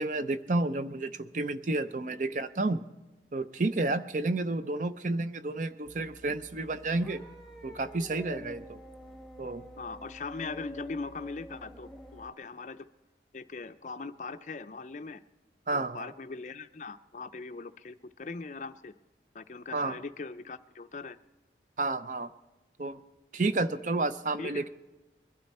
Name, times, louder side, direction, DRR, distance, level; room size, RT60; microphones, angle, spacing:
voice 1, 0.0-2.8 3.3-7.2 7.6-8.8 9.4-9.6 15.7-16.1 19.7-20.0 21.8-22.3 22.8-23.0 23.3-24.7, right 2 dB, 45° right, 12 dB, 0.5 m, -31 dB
sound 1, 5.8-12.3, equal, ahead, 1.2 m, -47 dB
voice 2, 9.8-12.9 13.3-15.2 15.7-18.9 19.3-21.2 24.4-24.7, left 4 dB, 40° left, 11 dB, 0.5 m, -40 dB
22.0 x 12.0 x 4.2 m, 1.1 s
head